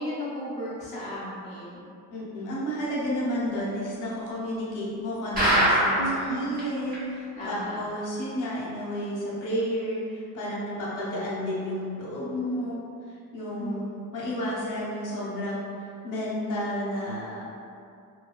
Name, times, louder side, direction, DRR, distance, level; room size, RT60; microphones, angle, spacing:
voice 1, 0.0-1.8 5.9-6.5 7.3-7.8 13.6-13.8 14.2-14.5, right 1 dB, 20° left, -10 dB, 0.4 m, -35 dB
voice 2, 2.1-12.8 13.1-17.5, equal, 65° left, -7 dB, 0.8 m, -31 dB
sound 1, 5.4-6.2 6.6-6.7 6.9-7.0 7.5-7.6, right 1 dB, 25° right, 0.7 m, -21 dB
2.7 x 2.3 x 2.3 m, 2.5 s
cardioid pair, 175°, 34 cm